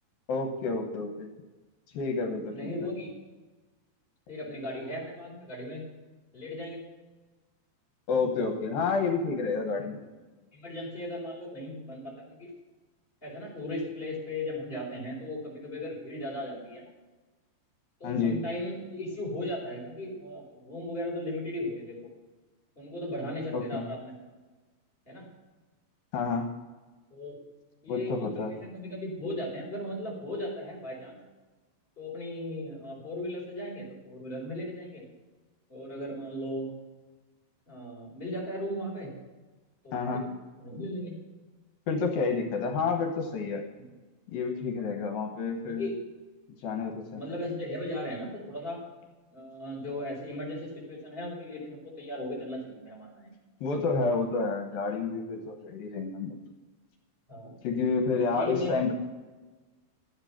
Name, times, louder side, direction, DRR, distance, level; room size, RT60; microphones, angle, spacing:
voice 1, 0.3-1.3 1.9-2.7 8.1-10.0 18.0-18.4 23.5-23.8 26.1-26.4 27.9-28.5 39.9-40.2 41.9-43.6 44.3-45.9 46.6-47.3 53.6-56.3 57.6-58.9, left 4 dB, 75° left, 3 dB, 2.9 m, -29 dB
voice 2, 2.5-3.1 4.3-5.8 6.3-6.8 10.5-12.5 13.2-16.8 18.0-22.0 22.8-24.1 25.1-25.2 27.1-27.4 27.8-31.2 32.0-35.0 35.7-36.7 37.7-39.1 39.8-40.3 40.6-41.2 43.8-43.9 45.7-45.9 47.1-48.8 49.3-53.3 57.3-57.5 58.3-58.7, left 1 dB, 15° left, -4 dB, 4.3 m, -37 dB
12.5 x 8.9 x 5.8 m, 1.2 s
omnidirectional pair, 4.2 m